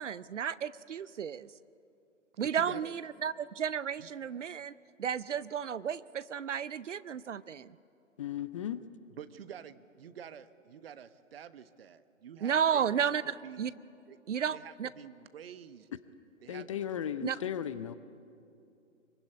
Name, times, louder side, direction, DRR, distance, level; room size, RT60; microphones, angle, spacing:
voice 1, 0.0-1.5 2.4-4.7 5.0-7.8 12.4-13.7 14.3-14.9 17.2-17.4, right 8 dB, 65° right, 18 dB, 0.7 m, -33 dB
voice 2, 2.4-2.9 4.0-4.1 9.1-13.8 14.1-14.2 14.5-15.9 16.4-16.7, right 8 dB, 45° right, 12 dB, 1.2 m, -48 dB
voice 3, 8.2-8.8 16.5-18.0, left 9 dB, 25° left, 14 dB, 0.6 m, -36 dB
24.5 x 23.5 x 9.8 m, 2.6 s
figure-of-eight pair, 130°, 39 cm